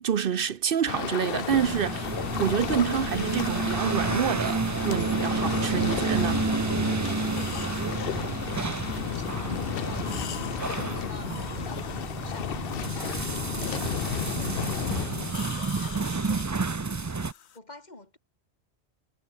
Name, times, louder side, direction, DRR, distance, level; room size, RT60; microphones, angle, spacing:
voice 1, 0.0-2.1 2.4-6.5, right 8 dB, 60° right, 0.8 m, -27 dB
sound 1, 0.9-15.3, left 10 dB, 60° left, 0.9 m, -33 dB
sound 2, 1.2-17.6, left 8 dB, 80° left, 1.2 m, -45 dB
sound 3, 1.5-17.3, right 4 dB, 30° right, 0.3 m, -30 dB
voice 2, 7.0-16.8 17.5-18.2, left 2 dB, 40° left, 3.3 m, -47 dB
omnidirectional pair, 1.1 m